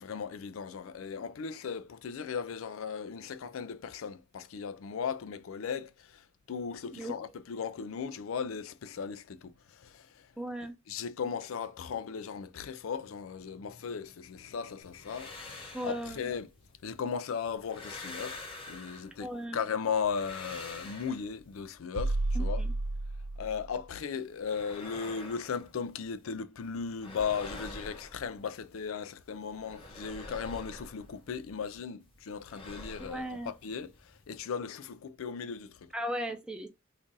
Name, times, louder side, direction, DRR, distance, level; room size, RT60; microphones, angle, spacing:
voice 1, 0.0-10.3 10.9-16.5 16.8-22.6 23.4-35.9, left 6 dB, 85° left, 0.4 m, -37 dB
voice 2, 10.4-10.8 15.7-16.3 19.2-19.6 22.3-22.7 33.0-33.5 35.9-36.7, equal, 5° right, 0.5 m, -37 dB
sound 1, 14.8-17.0 17.4-19.4 19.8-21.8 24.2-26.4 26.6-28.9 29.2-34.4, left 2 dB, 25° left, 0.8 m, -47 dB
sound 2, 22.0-23.8, right 2 dB, 90° right, 0.4 m, -31 dB
2.6 x 2.6 x 3.8 m
head